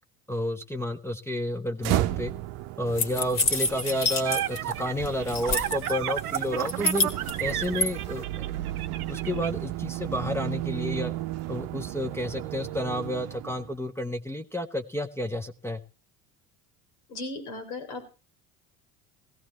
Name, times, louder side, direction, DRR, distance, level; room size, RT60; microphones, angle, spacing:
voice 1, 0.3-2.3 2.8-7.1 7.4-8.2 9.1-11.1 11.5-15.8, left 1 dB, 5° left, 4 dB, 0.7 m, -31 dB
sound 1, 1.8-13.8, right 16 dB, 60° right, 0.8 m, -34 dB
sound 2, 3.0-4.7 5.0-5.9 6.3-7.9, left 3 dB, 45° left, 2.1 m, -27 dB
sound 3, 3.7-9.5, right 12 dB, 90° right, 0.6 m, -32 dB
voice 2, 17.1-18.0, left 2 dB, 75° left, 6 dB, 3.1 m, -36 dB
17.0 x 15.0 x 3.0 m, 0.30 s
hypercardioid pair, 65°, 43 cm